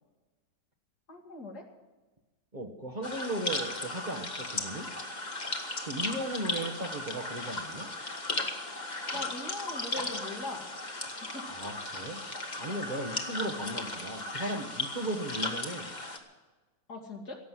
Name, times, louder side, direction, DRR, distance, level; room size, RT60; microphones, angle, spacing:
voice 1, 1.1-1.6 9.1-10.6 11.2-11.5 16.9-17.4, left 2 dB, 65° left, 0 dB, 2.9 m, -40 dB
voice 2, 2.5-4.9 5.9-7.9 11.5-12.2 12.6-15.9, right 1 dB, 30° right, -3 dB, 1.4 m, -36 dB
sound 1, 3.0-16.2, left 2 dB, 25° left, 1.6 m, -36 dB
17.0 x 7.9 x 9.3 m, 1.2 s
omnidirectional pair, 1.8 m